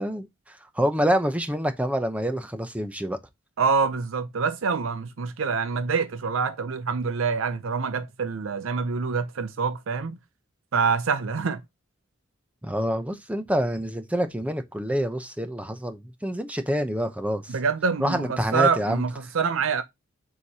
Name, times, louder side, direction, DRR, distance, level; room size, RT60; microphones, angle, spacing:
voice 1, 0.0-3.2 12.6-17.6 18.0-19.0, equal, 5° right, 0.7 m, -27 dB
voice 2, 3.6-10.2 10.7-11.6 17.5-19.8, right 5 dB, 80° right, 0.5 m, -26 dB
7.0 x 4.9 x 2.8 m
head